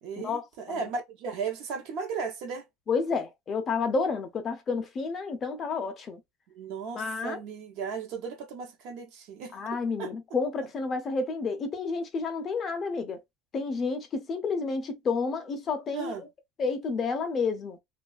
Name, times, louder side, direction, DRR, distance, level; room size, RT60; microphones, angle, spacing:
voice 1, 0.0-2.7 6.5-9.6 10.0-10.1 15.9-16.2, right 5 dB, 55° right, 0.6 m, -36 dB
voice 2, 2.9-6.2 6.9-7.4 9.5-13.2 13.5-16.3 16.6-17.8, left 4 dB, 25° left, 0.4 m, -30 dB
2.3 x 2.3 x 2.3 m
cardioid pair, 165°, 0 cm